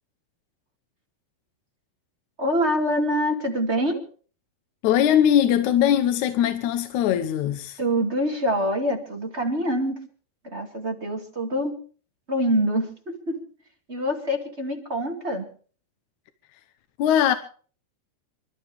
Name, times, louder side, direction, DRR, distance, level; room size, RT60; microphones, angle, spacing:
voice 1, 2.4-4.0 7.8-10.0 10.4-11.7 12.3-13.4 13.9-15.5, equal, 25° right, 1.8 m, -25 dB
voice 2, 4.8-7.8 17.0-17.3, left 10 dB, 70° left, 1.9 m, -20 dB
27.5 x 12.5 x 3.5 m
omnidirectional pair, 4.2 m